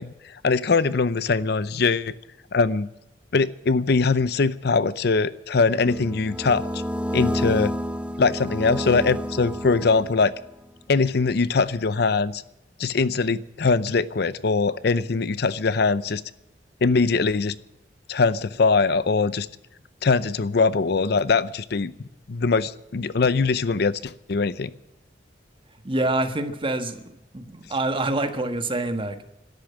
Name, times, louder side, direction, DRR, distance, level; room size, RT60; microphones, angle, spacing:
voice 1, 0.0-2.1 2.5-2.9 3.3-6.8 7.1-7.7 8.2-10.3 10.9-12.4 12.8-16.2 16.8-17.5 18.1-19.5 20.0-21.9 22.3-24.7, left 4 dB, 65° left, 16 dB, 0.6 m, -22 dB
sound 1, 5.8-10.5, equal, 5° right, 0.8 m, -29 dB
voice 2, 25.8-29.2, right 2 dB, 30° right, 8 dB, 1.4 m, -26 dB
13.0 x 10.5 x 9.4 m, 0.88 s
head